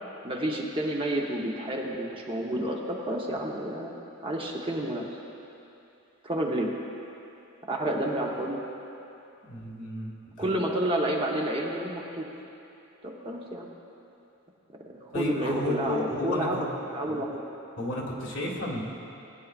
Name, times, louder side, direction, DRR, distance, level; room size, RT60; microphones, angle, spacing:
voice 1, 0.2-3.9 4.2-5.0 6.2-6.7 7.7-8.6 10.4-12.3 13.0-13.7 14.8-17.4, right 1 dB, 25° right, -1 dB, 0.9 m, -30 dB
voice 2, 9.4-10.1 10.4-10.5 15.1-16.7 17.1-17.2 17.8-18.8, left 1 dB, 60° left, -3 dB, 1.7 m, -32 dB
19.5 x 9.5 x 2.4 m, 2.8 s
head